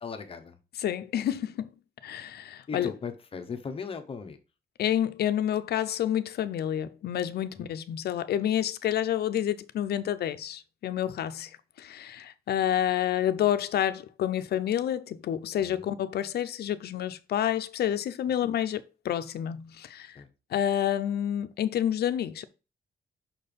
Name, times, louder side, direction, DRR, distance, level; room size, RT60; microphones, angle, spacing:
voice 1, 0.0-0.6 2.7-4.4 7.5-7.7 15.6-15.9 20.1-20.3, left 5 dB, 35° left, 0.8 m, -38 dB
voice 2, 0.8-1.7 2.0-2.9 4.8-11.5 11.8-20.2 20.5-22.4, left 10 dB, 75° left, 0.6 m, -29 dB
5.9 x 4.4 x 5.1 m
wide cardioid pair, 180°, 17 cm